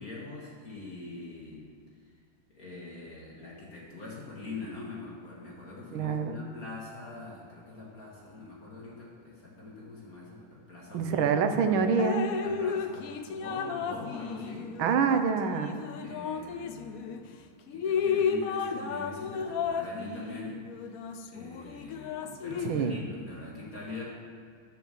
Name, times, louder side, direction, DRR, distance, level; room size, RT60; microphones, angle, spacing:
voice 1, 0.0-1.7 2.5-11.8 12.4-14.7 16.0-17.4 17.7-20.6 20.9-24.0, left 3 dB, 45° left, -5 dB, 2.6 m, -43 dB
voice 2, 5.9-6.4 10.9-12.3 14.8-15.8 22.6-23.0, right 6 dB, 80° right, 7 dB, 1.7 m, -26 dB
Drip, 12.0-17.2 17.7-23.0, left 6 dB, 70° left, 0.8 m, -33 dB
11.5 x 7.8 x 6.9 m, 2.2 s
omnidirectional pair, 2.2 m